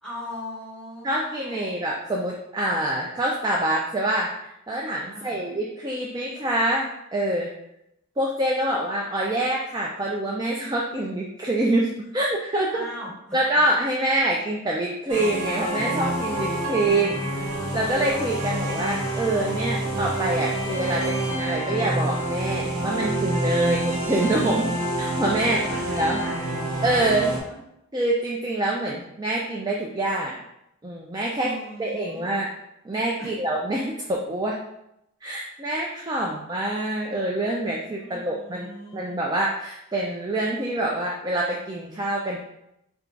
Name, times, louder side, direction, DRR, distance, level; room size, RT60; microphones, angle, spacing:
voice 1, 0.0-1.8 5.1-5.5 12.7-13.6 25.4-26.6 27.1-27.6 31.3-32.3 33.2-33.3 38.0-39.2, left 1 dB, ahead, -8 dB, 1.4 m, -40 dB
voice 2, 1.0-7.5 8.2-12.7 13.3-17.5 17.7-24.7 25.0-25.6 25.9-26.2 26.8-27.3 27.9-30.4 30.8-31.5 31.8-32.5 32.9-34.6 35.2-42.4, right 1 dB, 20° right, -2 dB, 0.3 m, -26 dB
sound 1, 15.1-27.4, right 1 dB, 85° right, 1.0 m, -27 dB
4.5 x 2.3 x 3.8 m, 0.81 s
head